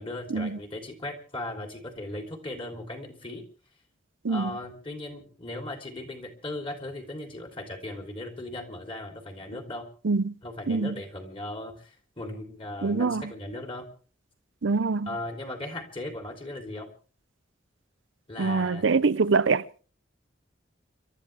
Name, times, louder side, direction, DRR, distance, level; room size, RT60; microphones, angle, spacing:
voice 1, 0.0-3.4 4.3-9.9 10.4-13.9 15.0-16.9 18.3-18.8, left 1 dB, 25° left, 3.4 m, -37 dB
voice 2, 4.2-4.6 10.0-10.3 10.7-11.0 12.8-13.2 14.6-15.1 18.4-19.7, right 4 dB, 75° right, 0.7 m, -24 dB
30.0 x 13.0 x 3.4 m
head